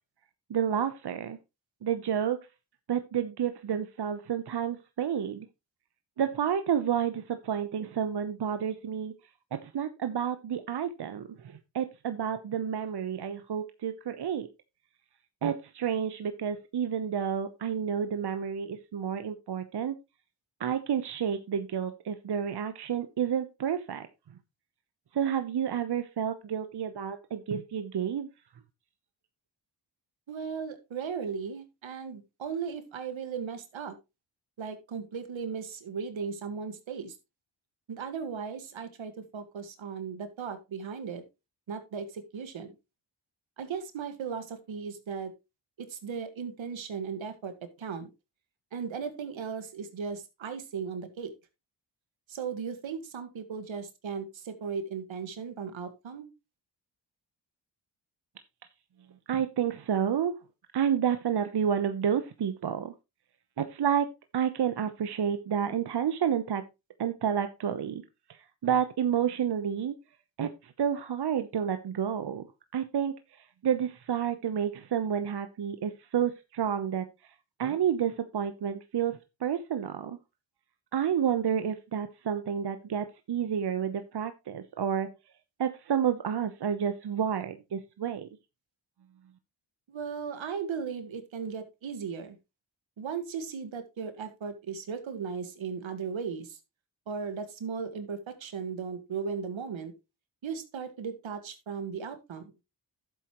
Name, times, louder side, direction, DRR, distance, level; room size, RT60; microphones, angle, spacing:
voice 1, 0.5-1.4 1.8-2.4 2.9-5.5 6.2-9.1 9.5-14.5 15.4-20.0 20.6-24.1 25.1-28.3 59.3-60.3 60.7-62.9 63.6-64.1 64.3-66.6 67.0-68.0 68.3-69.9 70.4-72.5 72.7-77.1 77.6-80.2 80.9-85.1 85.6-88.3, right 8 dB, 55° right, 9 dB, 0.9 m, -30 dB
voice 2, 30.3-34.0 34.6-37.2 37.9-41.2 41.7-42.7 43.6-45.3 45.8-48.1 48.7-51.3 52.3-56.3 89.9-92.4 93.0-96.6 97.1-99.9 100.4-102.4, right 6 dB, 75° right, 9 dB, 1.8 m, -37 dB
11.0 x 7.9 x 3.0 m, 0.25 s
cardioid pair, 60°, 47 cm